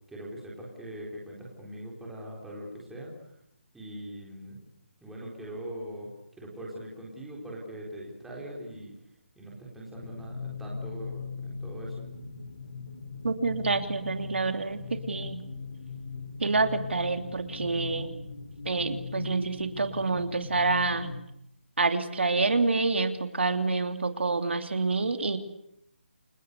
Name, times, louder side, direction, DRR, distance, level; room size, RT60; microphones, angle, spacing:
voice 1, 0.1-3.4 3.7-4.6 5.0-6.1 6.4-8.9 9.4-12.0, right 1 dB, ahead, -4 dB, 3.9 m, -41 dB
sound 1, 9.9-21.2, left 4 dB, 55° left, 3.8 m, -39 dB
voice 2, 13.2-15.4 16.4-18.1 18.6-21.1 21.8-25.4, right 3 dB, 65° right, 7 dB, 3.0 m, -27 dB
29.0 x 22.5 x 8.3 m, 0.78 s
hypercardioid pair, 180°, 7 cm